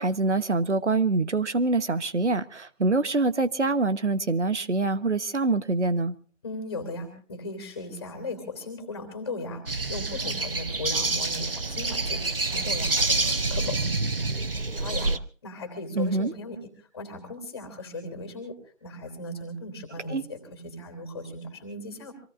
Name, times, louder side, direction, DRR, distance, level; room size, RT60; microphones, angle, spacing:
voice 1, 0.0-6.1 15.9-16.3 20.1-20.2, right 3 dB, 65° right, 1.3 m, -25 dB
voice 2, 6.4-9.6 9.9-13.8 14.8-15.1 15.4-16.6 16.9-18.5 18.8-22.1, left 2 dB, 20° left, 3.3 m, -37 dB
sound 1, 9.7-15.2, right 3 dB, 45° right, 0.8 m, -27 dB
26.5 x 18.5 x 2.6 m
figure-of-eight pair, 170°, 39 cm